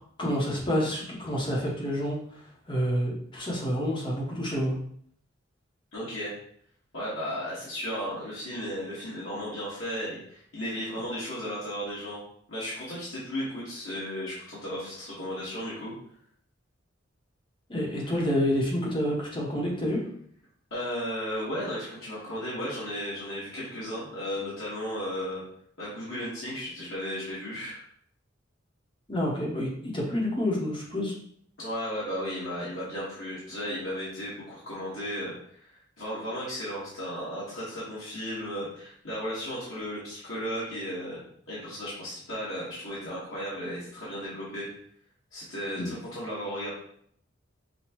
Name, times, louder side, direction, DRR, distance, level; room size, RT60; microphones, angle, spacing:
voice 1, 0.2-4.8 17.7-20.0 29.1-31.1 45.8-46.0, equal, 25° left, -3 dB, 1.0 m, -28 dB
voice 2, 5.9-6.3 6.9-12.2 12.5-15.9 20.7-25.4 25.8-27.8 31.6-35.3 35.6-41.2 41.5-44.7 45.3-46.7, equal, 90° left, -9 dB, 1.6 m, -35 dB
6.0 x 2.3 x 3.0 m, 0.65 s
head